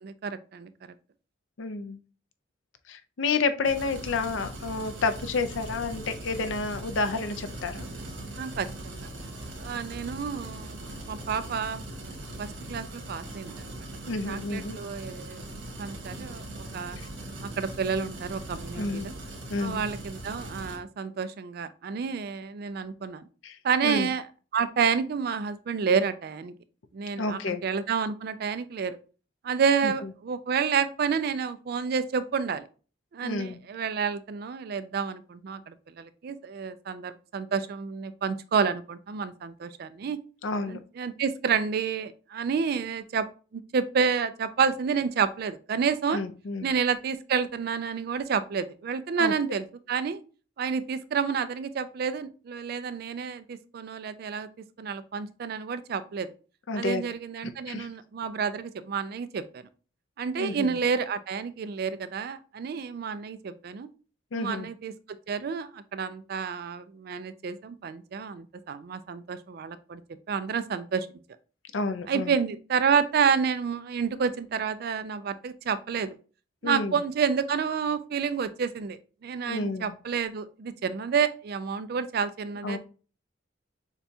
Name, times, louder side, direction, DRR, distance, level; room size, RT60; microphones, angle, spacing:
voice 1, 0.0-0.7 8.4-9.1 9.6-10.8 11.1-12.1 12.4-13.9 14.3-15.5 15.8-17.0 17.4-19.1 19.6-23.2 23.6-24.2 24.5-26.5 26.9-29.0 29.4-32.6 33.1-40.2 40.7-43.3 43.5-46.2 46.6-50.2 50.6-54.5 54.8-56.3 56.8-59.6 60.2-63.9 64.3-64.9 65.3-70.0 70.3-71.1 72.1-76.2 76.6-82.8, right 6 dB, 55° right, 0.3 m, -29 dB
voice 2, 1.6-2.0 2.9-7.9 14.1-14.8 18.8-19.1 19.5-19.8 23.4-23.6 23.8-24.1 27.2-27.6 29.8-29.9 33.2-33.6 40.4-40.8 46.1-46.7 49.2-49.3 56.7-57.0 57.7-57.9 60.4-60.8 64.3-64.7 71.7-72.3 76.6-77.0 79.5-79.9 82.6-82.8, left 3 dB, 85° left, 0.5 m, -30 dB
sound 1, 3.6-20.8, right 1 dB, 80° right, 1.5 m, -40 dB
6.7 x 2.3 x 2.7 m
head